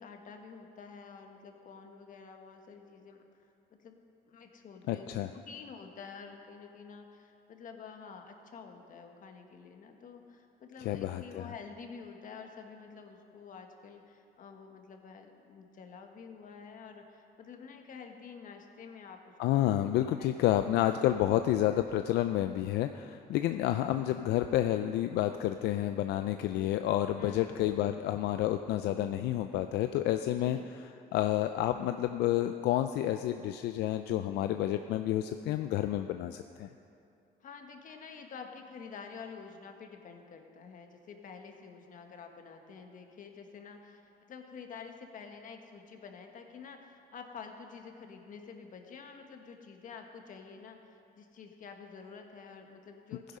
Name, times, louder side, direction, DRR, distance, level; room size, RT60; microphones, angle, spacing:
voice 1, 0.0-4.0 4.3-5.1 5.3-19.3 20.1-20.6 27.2-27.6 30.4-30.7 37.4-44.0 44.3-53.4, left 5 dB, 50° left, 4 dB, 1.5 m, -49 dB
voice 2, 4.9-5.3 10.8-11.5 19.4-30.6 31.1-36.7, left 13 dB, 80° left, 8 dB, 0.5 m, -30 dB
15.0 x 10.5 x 5.4 m, 2.6 s
cardioid pair, 110°, 17 cm